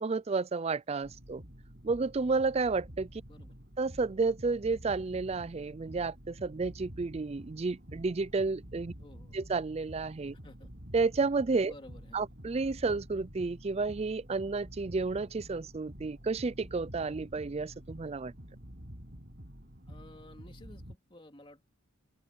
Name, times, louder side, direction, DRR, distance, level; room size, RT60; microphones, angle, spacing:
voice 1, 0.0-1.4 1.8-3.2 3.8-8.9 9.3-10.4 10.9-11.7 12.1-18.3, right 4 dB, 30° right, 0.4 m, -31 dB
sound 1, 1.0-21.0, equal, 50° right, 6.6 m, -49 dB
voice 2, 9.0-9.4 10.4-10.7 11.6-12.3 19.9-21.7, left 1 dB, 25° left, 2.8 m, -54 dB
open air
head